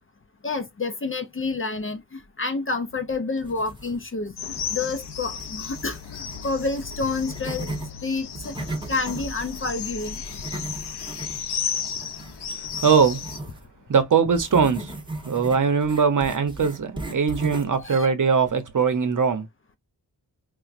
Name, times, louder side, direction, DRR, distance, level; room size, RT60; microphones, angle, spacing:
voice 1, 0.4-7.7 8.0-8.6 8.9-10.2 17.8-18.1, left 3 dB, 35° left, 0.5 m, -29 dB
sound 1, 3.4-4.2 4.5-7.9 8.3-13.6 14.3-17.8, right 2 dB, 10° right, 1.0 m, -37 dB
sound 2, 4.4-13.4, left 7 dB, 75° left, 0.6 m, -34 dB
voice 2, 12.8-13.2 13.9-14.9 15.2-19.5, right 6 dB, 50° right, 0.8 m, -21 dB
4.2 x 2.2 x 2.4 m
wide cardioid pair, 140°, 40 cm